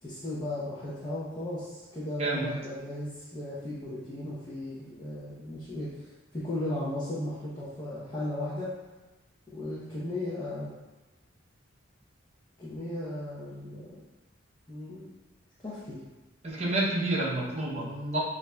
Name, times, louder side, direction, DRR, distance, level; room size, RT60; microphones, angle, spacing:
voice 1, 0.0-8.7 9.5-10.7 12.6-13.9 14.7-15.1 15.6-16.0 17.8-18.2, left 1 dB, 25° left, -9 dB, 0.7 m, -36 dB
voice 2, 16.4-18.2, right 2 dB, 35° right, -5 dB, 0.7 m, -29 dB
7.3 x 2.6 x 2.3 m, 1.1 s
head